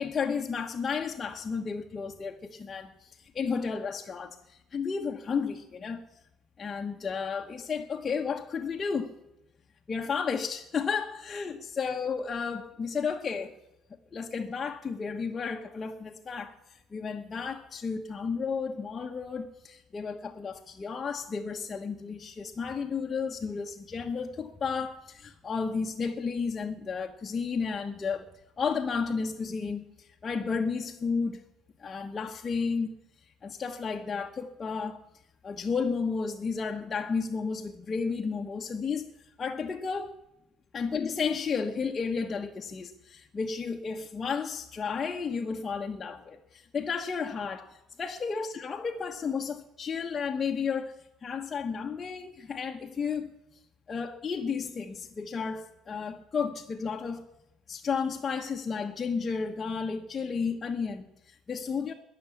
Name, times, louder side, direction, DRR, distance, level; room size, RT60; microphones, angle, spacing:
voice 1, 0.0-6.0 6.6-9.2 9.9-13.5 14.1-28.3 28.6-31.4 31.8-32.9 33.4-35.0 35.4-40.1 40.7-47.7 48.0-53.3 53.9-57.3 57.7-61.9, left 5 dB, 25° left, 1.1 m, -32 dB
21.0 x 7.0 x 8.5 m
cardioid pair, 125°, 0 cm